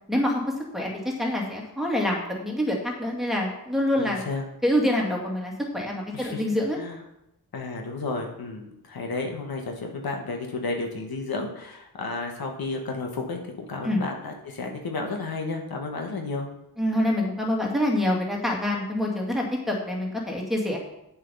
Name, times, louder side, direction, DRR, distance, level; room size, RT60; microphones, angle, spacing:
voice 1, 0.1-0.4 0.7-0.9 1.2-4.2 4.6-6.8 13.8-14.0 16.8-20.8, left 1 dB, ahead, -2 dB, 2.1 m, -26 dB
voice 2, 3.9-4.4 6.1-6.4 6.8-7.0 7.5-16.5, left 3 dB, 75° left, 2 dB, 1.6 m, -32 dB
8.9 x 7.4 x 5.5 m, 0.83 s
wide cardioid pair, 155°, 37 cm